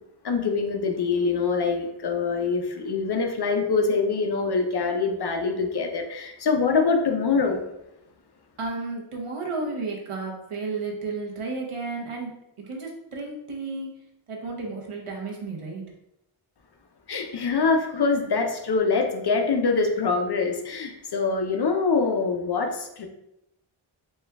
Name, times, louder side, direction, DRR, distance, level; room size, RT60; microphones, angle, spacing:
voice 1, 0.2-7.6 17.1-23.1, left 4 dB, 50° left, 4 dB, 0.6 m, -24 dB
voice 2, 8.6-12.3 12.6-13.9 14.3-15.8, right 3 dB, 85° right, -1 dB, 0.9 m, -32 dB
4.2 x 2.3 x 3.4 m, 0.83 s
wide cardioid pair, 85°, 50 cm